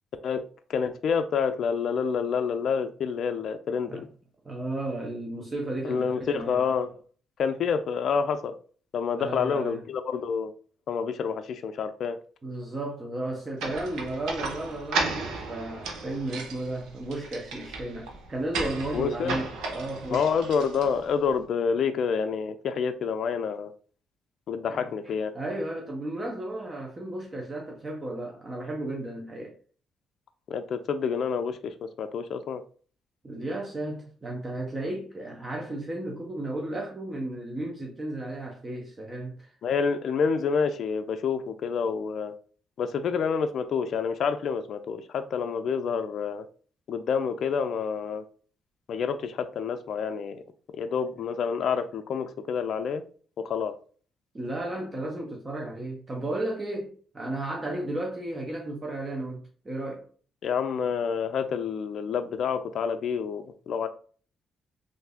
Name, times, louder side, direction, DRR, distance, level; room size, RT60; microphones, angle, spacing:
voice 1, 0.7-4.1 5.8-6.9 7.4-8.5 8.9-10.5 10.9-12.2 18.9-19.4 20.1-23.7 24.5-25.3 30.5-32.6 39.6-42.3 42.8-46.4 46.9-48.2 48.9-50.4 50.7-53.0 53.4-53.8 60.4-63.9, left 6 dB, 65° left, 0.3 m, -28 dB
voice 2, 4.4-6.6 9.2-9.8 12.4-20.3 24.7-24.9 25.3-29.6 33.2-39.5 54.3-60.1, right 1 dB, 30° right, 0.7 m, -34 dB
sound 1, 13.6-21.2, right 3 dB, 85° right, 0.8 m, -35 dB
3.2 x 2.6 x 3.4 m
cardioid pair, 90°, 0 cm